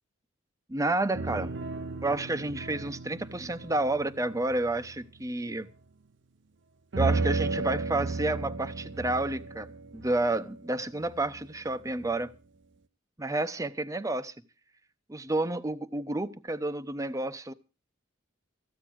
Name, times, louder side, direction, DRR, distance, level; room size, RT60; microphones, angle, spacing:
voice 1, 0.7-1.5 2.0-5.7 7.0-9.7 9.9-12.3 13.2-14.3 15.1-17.5, right 2 dB, 15° right, 0.7 m, -30 dB
sound 1, 1.1-5.2 6.9-11.7 12.0-12.1, right 3 dB, 55° right, 0.6 m, -34 dB
15.0 x 8.9 x 6.2 m
head